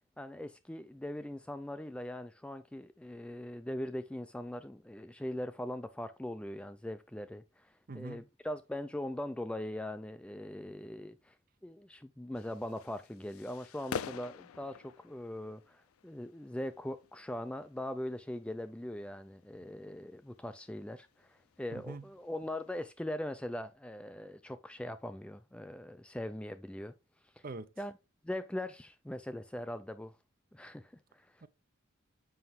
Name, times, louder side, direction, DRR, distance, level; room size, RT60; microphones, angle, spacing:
voice 1, 0.2-11.3 11.6-26.9 27.4-27.5 27.8-27.9 28.2-30.1 30.5-31.3, left 1 dB, 5° left, 0.3 m, -41 dB
voice 2, 7.9-8.3 21.7-22.1 27.4-27.7 31.4-31.5, right 3 dB, 40° right, 0.6 m, -43 dB
sound 1, 12.4-22.9, left 7 dB, 85° left, 0.4 m, -49 dB
7.7 x 5.4 x 3.6 m
head